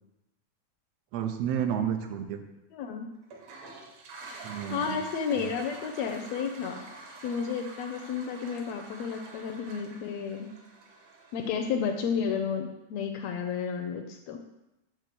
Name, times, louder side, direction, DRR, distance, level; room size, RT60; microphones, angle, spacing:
voice 1, 1.1-2.4 4.4-5.0 5.4-5.5, right 9 dB, 80° right, 7 dB, 1.5 m, -31 dB
voice 2, 2.7-3.1 4.7-6.8 7.2-10.5 11.3-14.4, left 6 dB, 80° left, 5 dB, 1.5 m, -32 dB
Toilet flush, 3.2-12.1, right 3 dB, 65° right, 2.1 m, -47 dB
8.8 x 3.8 x 6.7 m, 0.94 s
omnidirectional pair, 3.6 m